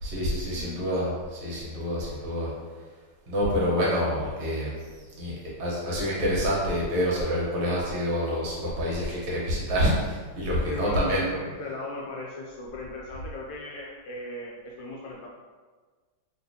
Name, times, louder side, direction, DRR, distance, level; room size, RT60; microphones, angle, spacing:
voice 1, 0.0-2.5 3.3-4.7 5.2-5.3 5.6-11.2, equal, 70° right, -5 dB, 1.8 m, -27 dB
voice 2, 10.6-15.3, left 1 dB, 75° left, -3 dB, 1.1 m, -37 dB
4.1 x 3.3 x 2.7 m, 1.4 s
omnidirectional pair, 2.4 m